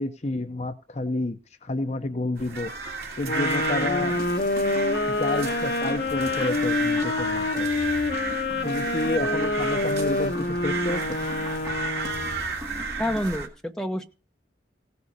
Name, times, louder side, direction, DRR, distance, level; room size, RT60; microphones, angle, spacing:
voice 1, 0.0-2.7 3.2-4.1 5.1-8.1 8.6-11.2, left 2 dB, 40° left, 0.7 m, -30 dB
sound 1, 2.4-13.5, right 4 dB, 60° right, 2.7 m, -33 dB
sound 2, 3.2-12.5, left 2 dB, 60° left, 1.3 m, -27 dB
sound 3, 3.8-13.4, equal, 20° right, 2.2 m, -40 dB
voice 2, 13.0-14.1, equal, 5° left, 1.1 m, -28 dB
16.5 x 6.9 x 6.5 m
head